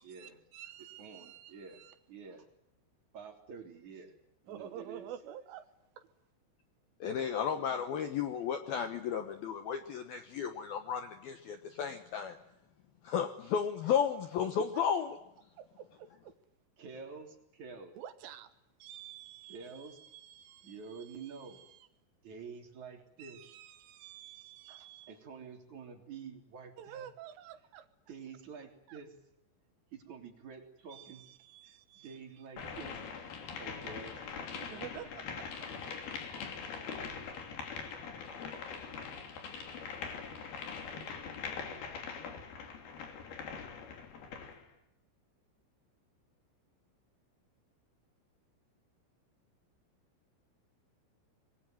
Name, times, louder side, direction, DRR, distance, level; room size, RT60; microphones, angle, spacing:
voice 1, 0.0-1.9 4.5-5.7 14.6-14.7 15.6-16.3 18.0-18.5 18.8-20.8 23.2-25.1 26.8-27.9 28.9-29.0 30.9-32.2 34.7-35.7, right 10 dB, 75° right, 10 dB, 3.8 m, -49 dB
voice 2, 1.0-1.8 2.1-2.5 3.1-4.1 4.4-5.1 7.5-7.6 16.8-17.9 19.5-20.0 20.6-21.6 22.2-23.4 24.7-27.1 28.1-29.1 29.9-31.2 31.6-33.0 33.4-34.7, right 5 dB, 40° right, 4 dB, 4.2 m, -48 dB
voice 3, 7.0-12.4 13.0-15.2, left 7 dB, 75° left, 8 dB, 2.3 m, -33 dB
sound 1, 32.6-44.6, left 6 dB, 50° left, 4.4 m, -42 dB
26.0 x 22.5 x 9.2 m, 0.82 s
omnidirectional pair, 5.9 m